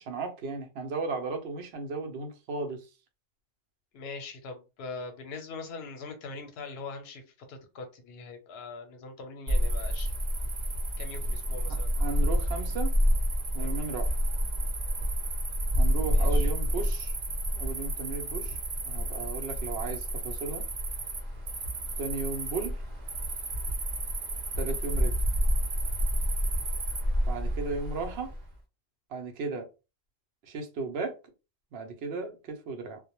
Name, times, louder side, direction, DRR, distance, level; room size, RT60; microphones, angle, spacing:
voice 1, 0.0-2.8 12.0-12.9 13.5-14.1 15.8-17.1 17.5-18.6 18.8-20.6 22.0-22.7 24.6-25.1 27.2-28.3 29.1-29.7 30.5-31.1 31.7-33.0, right 3 dB, 85° right, 0.9 m, -35 dB
voice 2, 3.9-10.1 11.0-12.0 13.6-13.8 16.0-16.5, left 4 dB, 75° left, 0.9 m, -42 dB
Cricket, 9.5-28.4, equal, 50° right, 0.7 m, -29 dB
2.1 x 2.1 x 2.9 m
omnidirectional pair, 1.0 m